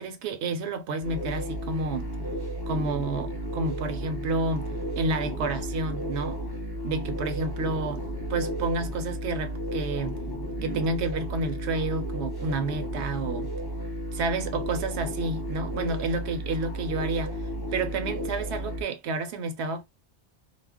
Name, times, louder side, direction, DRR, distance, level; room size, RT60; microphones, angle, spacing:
voice 1, 0.0-2.1 2.7-6.4 6.8-10.2 10.6-13.5 14.1-17.4 17.7-19.8, right 3 dB, 80° right, 0.9 m, -30 dB
sound 1, 1.0-18.8, equal, 25° left, 0.5 m, -33 dB
2.4 x 2.1 x 3.4 m
omnidirectional pair, 1.1 m